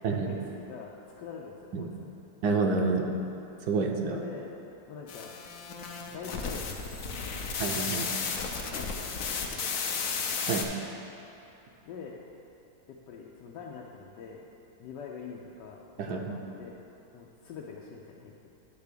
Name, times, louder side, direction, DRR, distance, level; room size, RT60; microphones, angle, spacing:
voice 1, 0.1-1.9 4.0-4.6 4.9-5.3 6.1-7.5 8.5-9.2 9.5-9.8 11.9-12.2 12.9-14.5 14.8-16.8 17.1-18.5, left 5 dB, 85° left, -3 dB, 1.3 m, -44 dB
voice 2, 2.4-3.1 3.7-4.2 7.6-8.1 10.4-10.7 16.0-16.2, right 4 dB, 70° right, 2 dB, 1.1 m, -28 dB
sound 1, 5.1-10.6, left 5 dB, 60° left, 1.0 m, -33 dB
9.8 x 3.4 x 6.7 m, 2.9 s
omnidirectional pair, 1.8 m